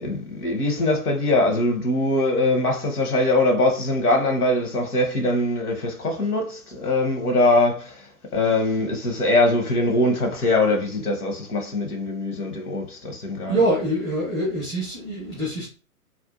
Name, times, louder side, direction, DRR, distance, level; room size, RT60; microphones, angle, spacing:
voice 1, 0.0-8.0 8.3-13.7, left 2 dB, 80° left, 0.9 m, -22 dB
voice 2, 13.4-15.7, right 1 dB, 5° right, 0.4 m, -24 dB
2.6 x 2.2 x 2.4 m
figure-of-eight pair, 125°, 44 cm